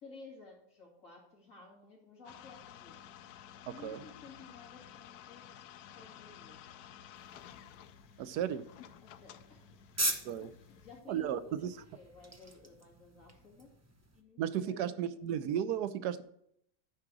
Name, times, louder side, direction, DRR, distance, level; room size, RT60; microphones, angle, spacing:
voice 1, 0.0-3.1 3.6-6.6 9.0-9.6 10.4-11.6 11.9-13.7 14.1-15.1, left 4 dB, 55° left, 3.1 m, -55 dB
sound 1, 2.2-11.0, left 10 dB, 80° left, 1.1 m, -53 dB
voice 2, 3.7-4.0 8.2-8.6 10.2-10.5 11.1-11.7 14.4-16.2, right 9 dB, 90° right, 1.2 m, -34 dB
sound 2, 7.1-14.2, right 2 dB, 20° right, 0.5 m, -42 dB
10.5 x 5.0 x 6.1 m
omnidirectional pair, 1.7 m